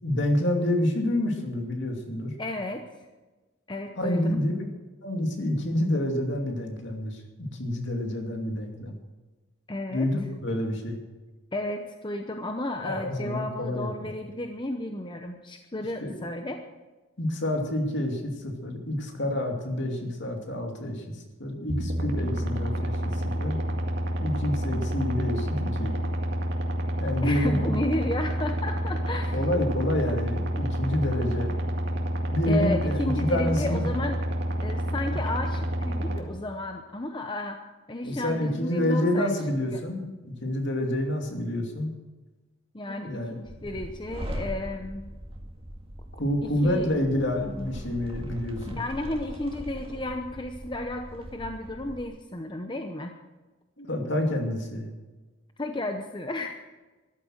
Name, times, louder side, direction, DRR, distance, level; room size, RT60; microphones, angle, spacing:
voice 1, 0.0-2.3 4.0-4.5 5.0-9.0 9.9-11.0 12.8-14.1 16.0-16.3 17.2-23.6 24.2-25.9 27.0-27.8 29.3-31.5 32.3-33.9 38.0-41.9 43.0-43.3 43.6-43.8 46.2-48.8 53.8-54.9, left 1 dB, 60° left, 3 dB, 2.6 m, -28 dB
voice 2, 2.4-2.9 3.7-4.4 9.7-10.1 11.5-16.6 27.2-29.4 32.5-34.2 34.6-37.6 37.9-39.3 39.7-39.8 42.7-45.1 46.4-46.9 48.7-53.1 55.6-56.6, left 1 dB, 25° left, 5 dB, 0.8 m, -33 dB
sound 1, 21.7-36.2, equal, 60° right, 2.1 m, -29 dB
sound 2, 43.5-52.1, equal, 30° right, 1.9 m, -40 dB
14.0 x 12.0 x 6.4 m, 1.2 s
head